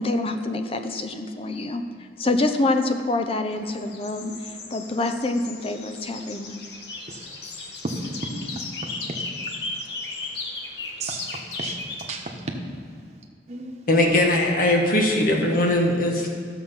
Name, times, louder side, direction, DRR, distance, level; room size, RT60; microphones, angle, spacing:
voice 1, 0.0-1.8 2.2-6.6, left 2 dB, 30° left, 6 dB, 0.6 m, -26 dB
sound 1, 3.5-12.2, left 3 dB, 70° left, 1.2 m, -36 dB
voice 2, 7.8-8.7 9.1-10.4 10.9-12.6 13.5-13.8, right 2 dB, 40° right, 1 dB, 1.1 m, -35 dB
voice 3, 13.9-16.3, left 1 dB, 50° left, 1 dB, 1.4 m, -20 dB
12.0 x 7.2 x 5.6 m, 2.3 s
head